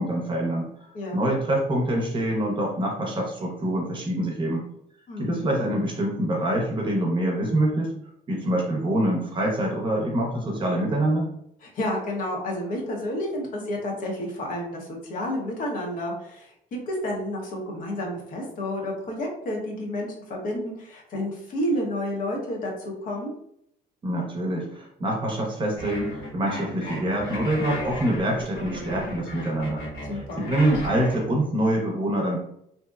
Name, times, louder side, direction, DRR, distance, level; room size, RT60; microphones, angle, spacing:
voice 1, 0.0-4.6 5.2-7.9 8.3-11.3 24.0-29.8 30.1-32.4, right 1 dB, 30° right, -1 dB, 0.7 m, -25 dB
voice 2, 0.9-1.3 5.1-5.4 11.6-16.5 16.9-23.3 30.1-30.5, left 1 dB, 55° left, -1 dB, 0.8 m, -30 dB
sound 1, 25.8-31.2, left 1 dB, 90° left, 1.0 m, -35 dB
2.7 x 2.1 x 2.3 m, 0.72 s
cardioid pair, 110°, 17 cm